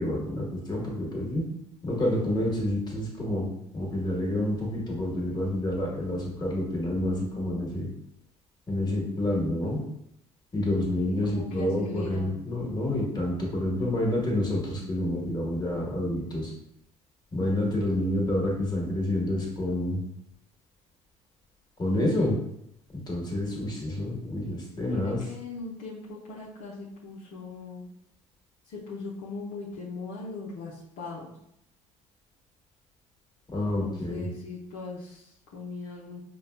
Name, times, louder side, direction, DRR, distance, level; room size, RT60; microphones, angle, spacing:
voice 1, 0.0-1.4 1.8-3.5 3.7-7.9 8.7-9.8 10.5-16.5 17.3-20.0 21.8-22.3 22.9-25.2 33.5-34.3, left 1 dB, 25° left, -2 dB, 1.3 m, -28 dB
voice 2, 11.1-12.3 24.9-27.8 28.6-31.3 33.7-36.2, left 3 dB, 60° left, -6 dB, 0.7 m, -39 dB
5.0 x 2.2 x 2.2 m, 0.77 s
hypercardioid pair, 60°, 16 cm